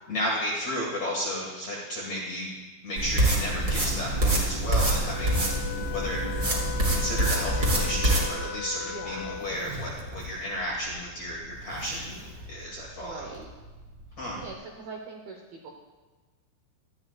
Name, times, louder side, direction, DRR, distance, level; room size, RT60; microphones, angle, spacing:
voice 1, 0.1-2.5 2.8-5.4 5.9-6.2 6.6-12.2 12.5-13.3 14.2-14.4, equal, 50° left, -4 dB, 2.1 m, -33 dB
sound 1, 3.0-8.3, right 1 dB, 25° right, 3.1 m, -25 dB
Zipper (clothing), 4.6-14.5, right 1 dB, 60° right, 2.2 m, -45 dB
Wind instrument woodwind instrument, 5.0-9.7, left 10 dB, 85° left, 2.5 m, -37 dB
voice 2, 8.8-9.3 13.0-13.5 14.4-15.7, right 4 dB, 75° right, 0 dB, 2.2 m, -42 dB
19.0 x 13.0 x 2.4 m, 1.3 s
omnidirectional pair, 5.7 m